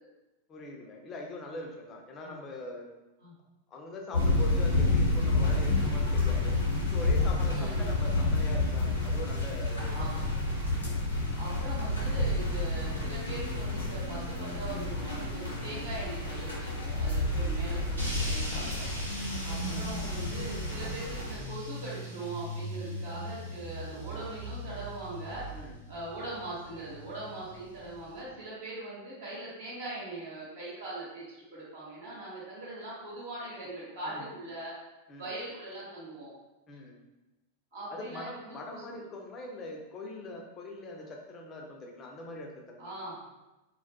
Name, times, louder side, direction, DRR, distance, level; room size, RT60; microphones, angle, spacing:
voice 1, 0.5-2.9 3.7-6.6 6.9-10.3 19.6-20.0 23.9-24.2 25.5-25.8 34.0-34.3 35.1-35.3 36.7-37.0 37.9-42.9, left 2 dB, 25° left, 0 dB, 0.4 m, -42 dB
sound 1, 4.1-21.4, left 2 dB, 80° left, 0.6 m, -29 dB
voice 2, 7.4-7.9 9.9-10.3 11.4-18.8 19.4-25.4 25.9-31.2 31.5-34.7 35.2-36.3 37.7-39.0 42.8-43.2, right 2 dB, 60° right, -8 dB, 0.9 m, -41 dB
sound 2, 8.3-15.9, left 2 dB, 10° right, 0.7 m, -46 dB
sound 3, 18.0-28.2, right 1 dB, 85° right, 0.6 m, -40 dB
2.2 x 2.0 x 2.7 m, 1.0 s
figure-of-eight pair, 90°, 0 cm